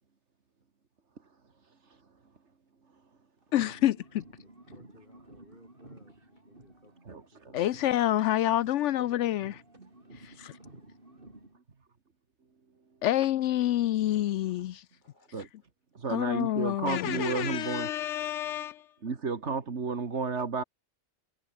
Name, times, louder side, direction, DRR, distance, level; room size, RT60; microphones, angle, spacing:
sound 1, 3.4-7.3 7.6-11.6, right 1 dB, 45° right, 5.7 m, -53 dB
voice 1, 3.5-4.2 7.5-9.5 10.1-10.6 13.0-14.8 16.1-18.9, left 13 dB, 80° left, 0.9 m, -28 dB
voice 2, 4.4-7.8 9.0-9.2 10.2-10.4 13.1-13.3 15.0-15.5, left 1 dB, 40° left, 5.8 m, -58 dB
voice 3, 7.1-7.6 9.8-9.9 15.3-15.5 16.0-17.9 19.0-20.6, right 4 dB, 70° right, 2.2 m, -32 dB
omnidirectional pair, 1.2 m